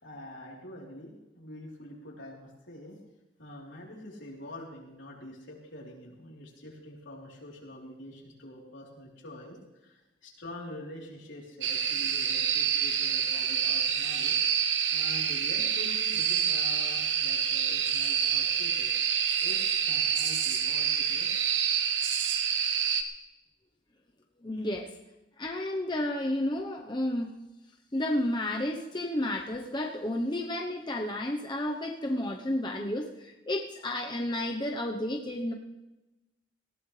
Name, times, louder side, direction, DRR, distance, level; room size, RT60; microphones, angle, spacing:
voice 1, 0.0-3.0 3.4-14.4 14.9-18.9 19.4-21.4, left 1 dB, 80° left, -2 dB, 3.6 m, -45 dB
sound 1, 11.6-23.0, right 8 dB, 80° right, 1.1 m, -27 dB
voice 2, 24.4-24.9 25.4-27.3 27.9-35.5, left 1 dB, 25° left, 1 dB, 0.9 m, -31 dB
19.0 x 16.5 x 3.3 m, 1.0 s
head